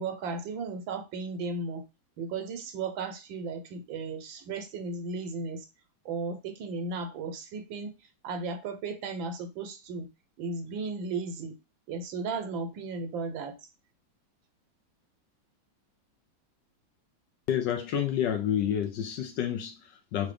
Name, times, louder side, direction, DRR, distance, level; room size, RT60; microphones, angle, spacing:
voice 1, 0.0-1.8 2.2-5.6 6.0-7.9 8.2-10.1 10.4-11.6 11.9-13.6, right 4 dB, 75° right, 1.4 m, -35 dB
voice 2, 17.5-20.3, left 9 dB, 75° left, 1.1 m, -29 dB
5.9 x 2.7 x 3.3 m
omnidirectional pair, 2.3 m